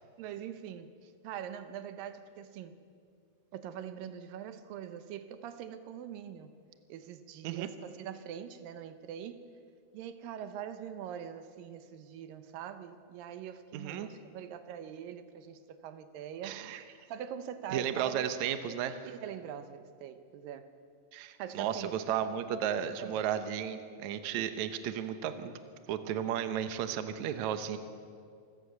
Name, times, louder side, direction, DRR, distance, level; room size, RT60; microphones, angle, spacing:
voice 1, 0.2-2.8 3.5-6.6 6.9-9.4 9.9-16.7 17.1-18.3 19.0-20.7 21.4-22.0 23.0-23.2, right 9 dB, 85° right, 10 dB, 2.6 m, -43 dB
voice 2, 13.7-14.1 16.4-16.8 17.7-19.1 21.1-25.6 25.9-27.8, right 9 dB, 65° right, 9 dB, 2.1 m, -34 dB
26.5 x 16.5 x 6.6 m, 2.2 s
omnidirectional pair, 4.0 m